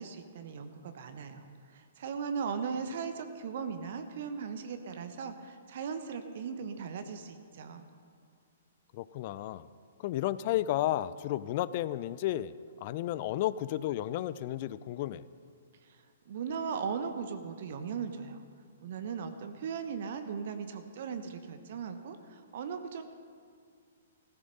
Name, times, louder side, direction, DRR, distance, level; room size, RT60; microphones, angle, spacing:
voice 1, 0.0-7.9 15.8-18.4 18.8-23.0, right 6 dB, 50° right, 8 dB, 1.1 m, -38 dB
voice 2, 8.9-9.6 10.0-12.5 12.8-15.2, left 13 dB, 40° left, 17 dB, 0.5 m, -32 dB
16.0 x 14.5 x 5.4 m, 2.1 s
figure-of-eight pair, 115°, 0 cm